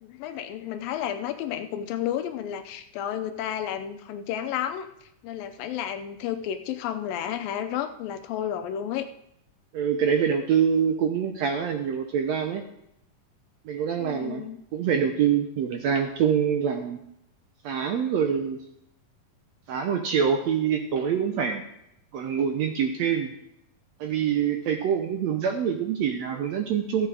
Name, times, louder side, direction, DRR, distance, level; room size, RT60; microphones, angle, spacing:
voice 1, 0.0-9.1 14.0-14.6, left 10 dB, 80° left, 8 dB, 2.4 m, -32 dB
voice 2, 9.7-12.6 13.6-17.0 17.6-18.6 19.7-21.6 22.1-23.3 24.0-27.1, right 7 dB, 80° right, 5 dB, 1.5 m, -25 dB
15.0 x 7.7 x 4.8 m, 0.78 s
omnidirectional pair, 4.0 m